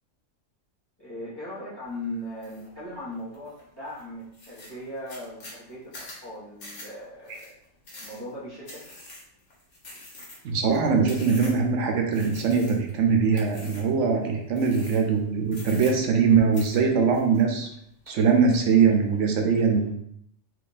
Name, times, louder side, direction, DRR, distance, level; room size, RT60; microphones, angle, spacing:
voice 1, 1.0-7.5 8.0-9.0, left 1 dB, 20° left, -10 dB, 1.1 m, -38 dB
sound 1, 2.4-2.7 3.1-3.6 4.0-4.1 4.3-11.7 12.1-13.0 13.3-14.0 14.5-15.2 15.5-16.3 16.5-17.7 18.1-18.6, left 2 dB, 65° left, 1.4 m, -45 dB
voice 2, 10.4-17.7 18.1-20.0, right 5 dB, 70° right, 2 dB, 0.9 m, -22 dB
3.0 x 2.6 x 3.9 m, 0.71 s
omnidirectional pair, 1.4 m